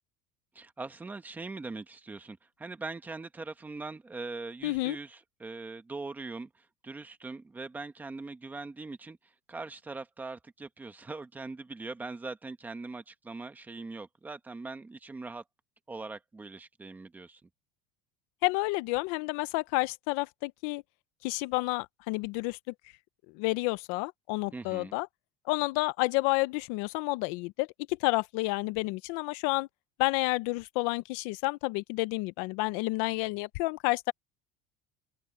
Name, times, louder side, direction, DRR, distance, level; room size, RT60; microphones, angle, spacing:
voice 1, 0.5-9.2 9.5-15.4 15.9-17.5 24.5-24.9, right 3 dB, 10° right, 1.3 m, -41 dB
voice 2, 4.6-5.0 18.4-20.8 21.2-22.7 23.3-25.1 25.5-29.7 30.0-34.1, left 23 dB, 60° left, 0.6 m, -30 dB
cardioid pair, 175°, 19 cm